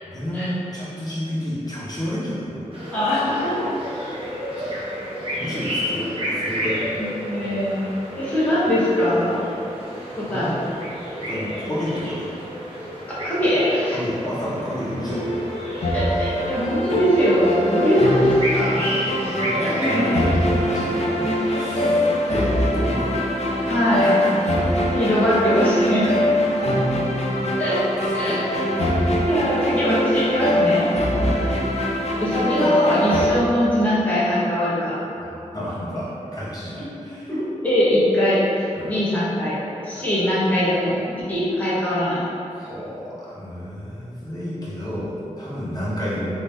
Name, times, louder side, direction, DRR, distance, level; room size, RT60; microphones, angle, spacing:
voice 1, 0.0-3.1 5.3-7.0 10.3-10.5 11.1-12.3 13.9-15.2 18.7-23.2 24.0-24.3 28.0-28.6 31.1-31.5 35.0-37.3 38.7-38.9 39.9-40.1 42.5-46.3, equal, 30° left, -9 dB, 1.2 m, -31 dB
sound 1, 2.7-22.5, equal, 45° right, 0.9 m, -31 dB
voice 2, 2.9-3.7 7.0-9.4 10.1-10.6 13.2-14.0 15.9-18.7 19.8-20.1 23.7-24.2 24.9-26.0 27.6-27.8 28.1-28.4 29.2-30.9 32.2-34.9 37.3-39.6 39.8-42.2, left 1 dB, 10° left, -10 dB, 1.0 m, -21 dB
sound 2, 15.1-33.3, equal, 55° left, 0.5 m, -23 dB
3.0 x 2.7 x 3.4 m, 2.7 s
cardioid pair, 55°, 13 cm